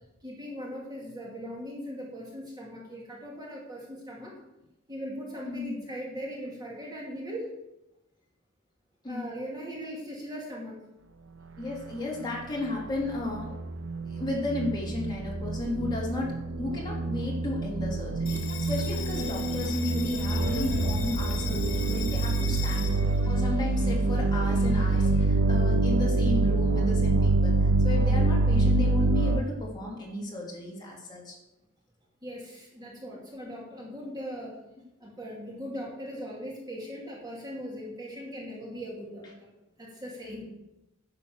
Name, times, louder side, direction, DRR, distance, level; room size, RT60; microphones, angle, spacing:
voice 1, 0.2-4.3 4.9-7.5 9.1-10.8 32.2-34.6 35.0-39.5 39.8-40.5, equal, 20° right, -3 dB, 2.3 m, -39 dB
voice 2, 5.4-5.8 9.0-9.2 11.6-13.5 14.1-22.9 23.3-31.4, left 2 dB, 20° left, -4 dB, 3.2 m, -34 dB
sound 1, 13.0-29.4, right 2 dB, 75° right, 0.7 m, -26 dB
Bell, 18.3-25.3, left 7 dB, 85° left, 1.3 m, -40 dB
10.5 x 7.2 x 6.6 m, 0.92 s
head